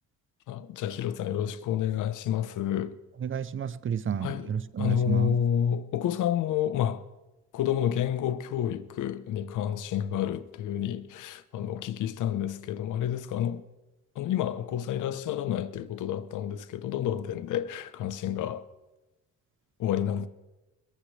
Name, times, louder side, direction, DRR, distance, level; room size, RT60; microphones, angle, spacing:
voice 1, 0.5-3.0 4.2-7.0 7.5-13.7 14.1-18.7 19.8-20.3, left 10 dB, 80° left, 1.0 m, -29 dB
voice 2, 3.2-5.4, right 8 dB, 40° right, 0.8 m, -31 dB
21.5 x 19.0 x 3.4 m
cardioid pair, 90°, 30 cm